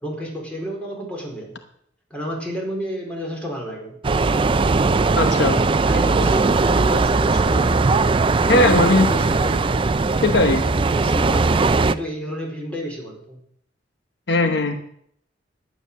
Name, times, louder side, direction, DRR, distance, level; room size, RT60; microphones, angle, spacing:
voice 1, 0.0-1.5 2.1-4.0 5.8-8.0 8.4-9.9 10.7-13.4, equal, 5° left, -1 dB, 4.4 m, -30 dB
sound 1, 4.0-12.0, right 3 dB, 30° right, 0.4 m, -19 dB
voice 2, 5.2-5.6 8.5-9.1 10.2-10.7 14.3-14.8, left 2 dB, 65° left, 7 dB, 1.0 m, -18 dB
12.0 x 9.7 x 6.8 m, 0.69 s
head